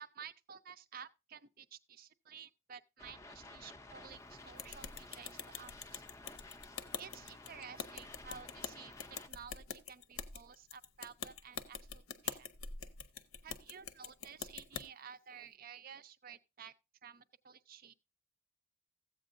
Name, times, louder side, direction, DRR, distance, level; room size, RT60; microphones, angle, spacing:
voice 1, 0.0-6.0 7.0-9.0 9.3-12.5 13.4-16.7 17.0-17.9, right 7 dB, 45° right, 0.5 m, -53 dB
sound 1, 3.0-9.3, left 2 dB, 15° left, 0.5 m, -53 dB
sound 2, 4.6-14.8, left 7 dB, 85° left, 0.8 m, -45 dB
14.5 x 8.2 x 2.5 m
head